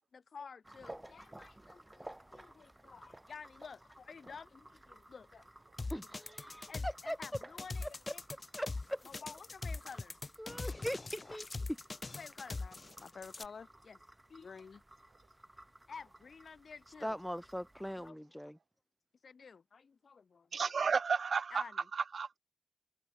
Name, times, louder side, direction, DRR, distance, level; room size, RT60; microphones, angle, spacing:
voice 1, 0.1-5.5 6.0-6.1 6.6-8.2 9.0-10.2 12.2-14.0 14.3-14.8 15.9-17.2 18.0-18.2 19.2-20.5 21.5-21.9, left 5 dB, 75° left, 5.1 m, -51 dB
sound 1, 0.6-18.1, right 1 dB, 15° right, 5.5 m, -57 dB
sound 2, 5.8-13.5, left 3 dB, 40° left, 0.6 m, -42 dB
voice 2, 5.9-7.2 8.5-9.0 10.4-11.8 17.0-18.6, equal, ahead, 0.9 m, -40 dB
voice 3, 20.5-21.6 21.9-22.4, right 5 dB, 80° right, 0.5 m, -32 dB
wide cardioid pair, 95°, 0 cm